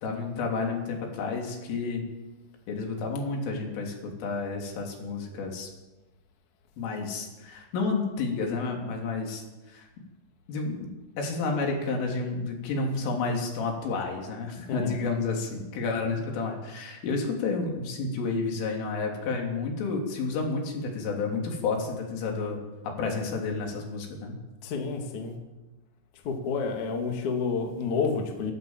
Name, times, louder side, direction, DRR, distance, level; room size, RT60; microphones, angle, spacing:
voice 1, 0.0-2.0 2.7-5.7 6.8-9.9 10.5-22.6 23.0-24.4, left 4 dB, 80° left, 1 dB, 5.8 m, -30 dB
voice 2, 14.7-15.0 24.6-25.3 26.2-28.5, left 5 dB, 45° left, 2 dB, 3.2 m, -29 dB
27.5 x 13.5 x 7.4 m, 1.1 s
omnidirectional pair, 5.6 m